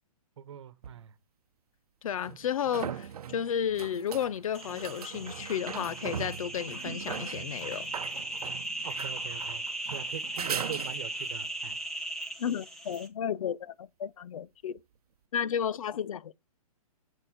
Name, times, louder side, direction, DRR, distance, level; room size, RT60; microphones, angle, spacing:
voice 1, 0.4-1.1 8.8-9.6 9.9-11.8, right 9 dB, 50° right, 1.3 m, -42 dB
sound 1, 0.8-0.9 2.2-11.4 14.8-14.9, right 9 dB, 80° right, 0.8 m, -40 dB
voice 2, 2.0-7.9 12.4-14.8 15.3-16.3, left 8 dB, 65° left, 0.6 m, -33 dB
sound 2, 4.5-13.1, right 1 dB, 5° left, 0.8 m, -38 dB
7.4 x 6.9 x 5.0 m
hypercardioid pair, 175°, 19 cm